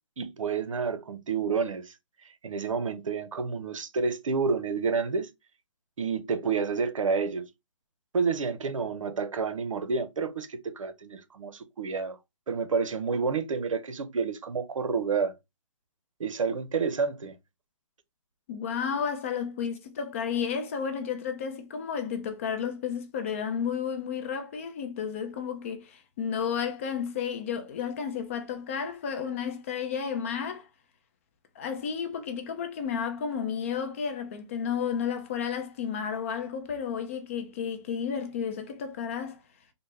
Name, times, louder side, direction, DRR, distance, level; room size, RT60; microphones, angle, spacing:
voice 1, 0.2-1.9 2.2-5.3 6.0-7.5 8.1-12.2 12.5-15.3 16.2-17.4, right 5 dB, 75° right, 0.7 m, -29 dB
voice 2, 18.5-30.7 31.6-39.4, left 7 dB, 25° left, 0.5 m, -32 dB
4.0 x 2.0 x 3.3 m
hypercardioid pair, 160°, 17 cm